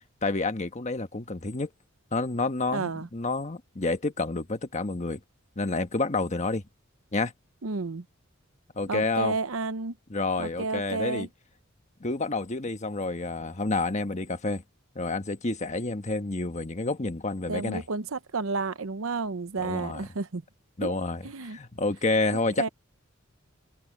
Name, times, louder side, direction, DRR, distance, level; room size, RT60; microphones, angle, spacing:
voice 1, 0.2-1.7 2.1-5.2 5.6-6.6 7.1-7.3 8.8-9.4 10.1-11.3 12.0-14.6 14.9-17.8 19.6-20.0 20.8-22.7, left 3 dB, 35° left, 1.3 m, -29 dB
voice 2, 2.7-3.1 7.6-8.0 8.9-10.0 10.4-11.3 17.5-20.4 20.8-21.0 21.2-21.6 22.6-22.7, right 3 dB, 75° right, 0.9 m, -31 dB
open air
head